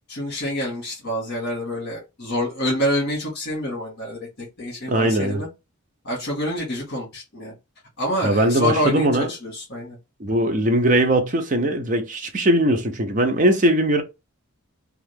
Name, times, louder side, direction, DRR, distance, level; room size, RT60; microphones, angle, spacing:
voice 1, 0.1-5.5 6.0-7.5 8.0-10.0, equal, 50° left, 1.5 m, -27 dB
voice 2, 4.9-5.4 8.2-9.3 10.2-14.0, right 1 dB, 35° right, 0.6 m, -20 dB
2.8 x 2.4 x 3.4 m
head